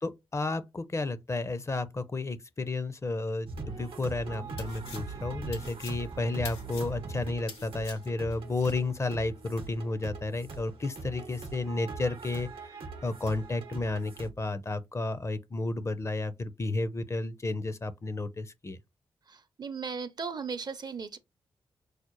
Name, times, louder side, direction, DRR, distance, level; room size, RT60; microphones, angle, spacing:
voice 1, 0.0-18.8, left 2 dB, 30° left, 0.5 m, -32 dB
sound 1, 3.5-14.3, right 3 dB, 80° right, 0.8 m, -42 dB
sound 2, 4.3-8.8, left 4 dB, 85° left, 1.1 m, -46 dB
voice 2, 19.3-21.2, right 5 dB, 50° right, 0.6 m, -37 dB
4.8 x 2.0 x 3.0 m
cardioid pair, 50°, 9 cm